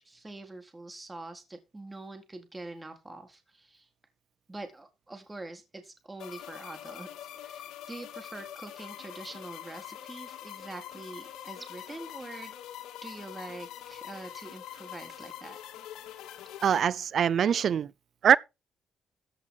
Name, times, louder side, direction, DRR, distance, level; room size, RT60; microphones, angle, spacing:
voice 1, 0.0-3.9 4.5-12.5 13.0-15.6, right 2 dB, 15° right, 3.9 m, -44 dB
sound 1, 6.2-16.8, left 11 dB, 85° left, 2.9 m, -44 dB
voice 2, 16.6-17.9 18.2-18.4, right 8 dB, 60° right, 0.5 m, -23 dB
15.0 x 8.1 x 3.9 m
cardioid pair, 90°, 0 cm